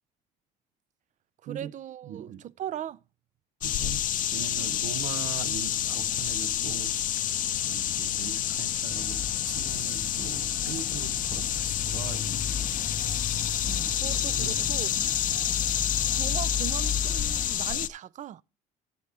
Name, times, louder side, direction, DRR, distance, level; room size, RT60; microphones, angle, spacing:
voice 1, 1.4-3.0 4.6-4.7 13.7-14.9 16.2-18.4, right 11 dB, 45° right, 0.4 m, -39 dB
voice 2, 2.0-2.4 3.6-4.0 4.3-7.3 7.7-12.9 13.8-15.3, right 9 dB, 85° right, 0.7 m, -41 dB
sound 1, 3.6-17.9, left 11 dB, 50° left, 0.5 m, -29 dB
sound 2, 8.9-17.5, left 5 dB, 5° left, 0.7 m, -36 dB
13.0 x 8.2 x 3.4 m
cardioid pair, 110°, 17 cm